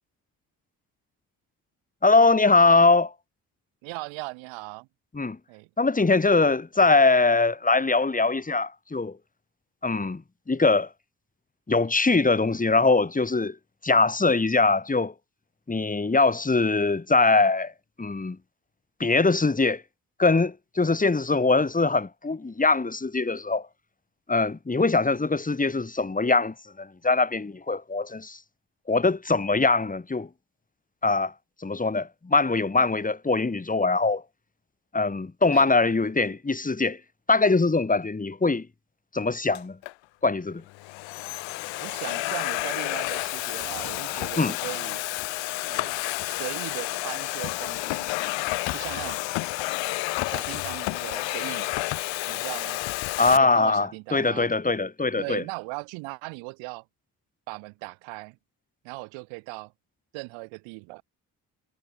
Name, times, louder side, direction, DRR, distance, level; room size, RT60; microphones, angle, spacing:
voice 1, 2.0-3.1 5.1-5.4 5.8-9.2 9.8-10.2 10.5-10.9 11.7-13.6 13.8-15.1 15.7-17.7 18.0-18.4 19.0-19.8 20.2-23.7 24.3-28.4 28.9-30.3 31.0-31.3 31.6-34.2 34.9-37.0 37.3-38.7 39.1-39.8 40.2-40.6 44.4-44.6 53.2-55.4, left 3 dB, 15° left, 1.5 m, -22 dB
voice 2, 3.8-4.9 5.5-5.7 35.5-35.7 41.8-45.0 45.7-46.0 46.2-48.1 48.7-49.2 50.2-51.8 52.3-52.8 53.4-54.5 55.2-56.8 57.5-58.4 58.8-59.7 60.1-61.0, right 29 dB, 80° right, 1.7 m, -38 dB
Domestic sounds home sounds, 39.5-39.9 40.7-53.4, left 20 dB, 75° left, 1.3 m, -30 dB
hypercardioid pair, 40°, 46 cm